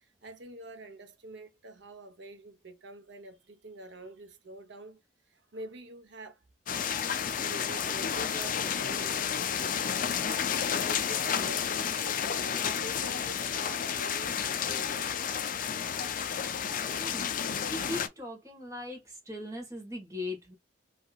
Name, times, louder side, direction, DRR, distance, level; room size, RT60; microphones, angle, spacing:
voice 1, 0.0-5.0 5.3-6.4 7.3-15.1, right 1 dB, 60° right, 0.8 m, -46 dB
sound 1, 6.7-18.1, left 8 dB, 45° left, 0.4 m, -31 dB
voice 2, 17.0-20.6, left 2 dB, 15° right, 1.3 m, -39 dB
3.2 x 2.7 x 2.2 m
head